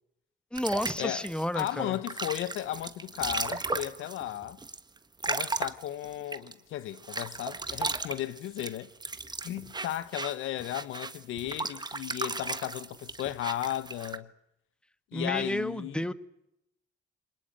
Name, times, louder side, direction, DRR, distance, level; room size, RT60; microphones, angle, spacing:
voice 1, 0.5-2.0 15.1-16.1, left 1 dB, 5° left, 1.6 m, -31 dB
sound 1, 0.6-6.5 7.0-14.2, right 3 dB, 20° right, 1.5 m, -36 dB
voice 2, 1.5-4.6 5.2-8.9 9.4-14.3 15.1-16.0, left 13 dB, 85° left, 1.2 m, -35 dB
26.0 x 19.5 x 9.0 m
cardioid pair, 90°, 20 cm